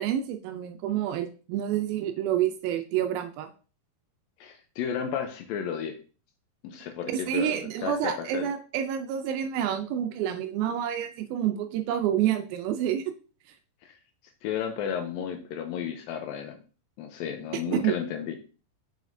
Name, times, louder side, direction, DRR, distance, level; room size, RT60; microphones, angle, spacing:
voice 1, 0.0-3.5 7.1-13.1 17.7-17.9, right 10 dB, 85° right, 7 dB, 2.1 m, -28 dB
voice 2, 4.4-6.0 6.6-8.5 13.8-13.9 14.4-16.6 17.0-18.4, left 8 dB, 90° left, 6 dB, 2.0 m, -33 dB
6.8 x 6.2 x 2.6 m, 0.36 s
omnidirectional pair, 4.8 m